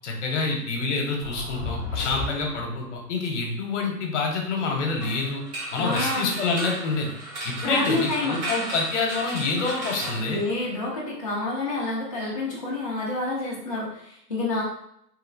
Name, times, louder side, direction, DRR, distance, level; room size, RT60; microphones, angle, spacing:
voice 1, 0.0-5.4 5.7-7.1 7.4-10.4, left 3 dB, 45° left, 1 dB, 0.9 m, -27 dB
sound 1, 1.2-2.9, left 2 dB, 15° right, 0.7 m, -33 dB
sound 2, 5.0-11.0, right 1 dB, 45° right, 1.3 m, -35 dB
voice 2, 5.8-6.3 7.6-8.4 10.3-14.6, left 2 dB, 25° left, -8 dB, 0.4 m, -28 dB
3.1 x 2.7 x 2.5 m, 0.73 s
figure-of-eight pair, 125°, 48 cm